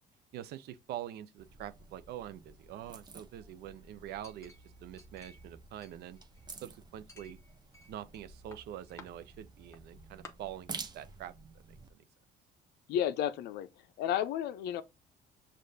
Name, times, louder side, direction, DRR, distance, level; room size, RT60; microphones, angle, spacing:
voice 1, 0.3-4.6 4.8-6.2 6.6-7.4 7.9-11.3 11.7-12.0, right 12 dB, 75° right, 0.5 m, -45 dB
sound 1, 1.4-11.9, right 4 dB, 25° right, 0.6 m, -50 dB
Chink clink, 4.2-5.5 5.8-6.6 7.1-8.2 8.5-9.1 9.7-9.8 10.2-10.3, left 3 dB, 15° left, 0.9 m, -54 dB
voice 2, 12.9-13.7 14.0-14.8, left 10 dB, 75° left, 0.5 m, -32 dB
6.5 x 2.5 x 2.6 m
cardioid pair, 110°, 17 cm